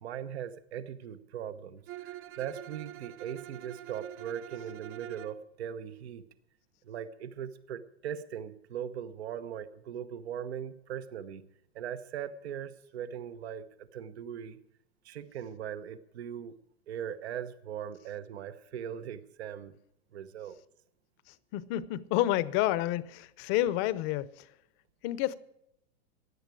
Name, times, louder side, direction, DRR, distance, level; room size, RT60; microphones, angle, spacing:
voice 1, 0.0-6.2 6.8-11.4 11.7-14.6 15.0-16.5 16.9-19.7 20.1-20.6, right 9 dB, 80° right, 1.1 m, -40 dB
Bowed string instrument, 1.9-5.4, right 15 dB, 50° right, 0.9 m, -45 dB
voice 2, 21.5-24.3 25.0-25.3, left 14 dB, 40° left, 0.7 m, -29 dB
16.5 x 11.0 x 4.8 m
hypercardioid pair, 125°, 32 cm